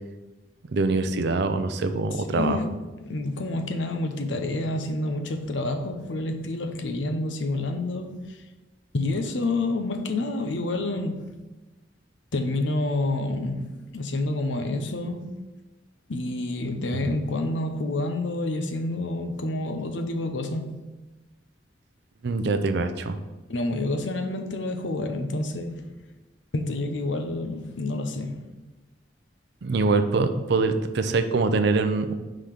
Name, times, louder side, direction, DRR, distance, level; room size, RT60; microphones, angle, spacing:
voice 1, 0.7-2.6 17.0-17.2 22.2-23.2 29.6-32.1, right 3 dB, 65° right, 8 dB, 0.5 m, -24 dB
voice 2, 2.1-2.8 3.0-8.4 8.9-11.3 12.3-15.3 16.1-20.8 23.5-25.9 26.5-28.5, left 2 dB, 80° left, 6 dB, 0.7 m, -28 dB
5.0 x 3.8 x 5.7 m, 1.1 s
head